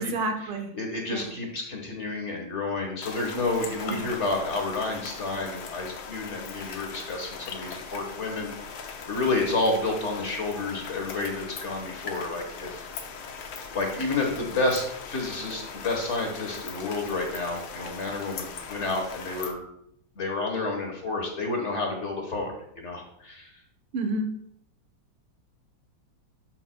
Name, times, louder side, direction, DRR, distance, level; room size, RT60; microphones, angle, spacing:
voice 1, 0.0-0.7 1.1-1.3 3.8-4.1 23.9-24.3, right 2 dB, 90° right, 5 dB, 1.9 m, -30 dB
voice 2, 0.7-12.8 13.7-19.6 20.2-23.5, left 2 dB, 40° left, 1 dB, 1.3 m, -30 dB
sound 1, 3.0-19.5, left 5 dB, 85° left, 1.7 m, -40 dB
11.5 x 5.9 x 2.2 m, 0.71 s
omnidirectional pair, 2.2 m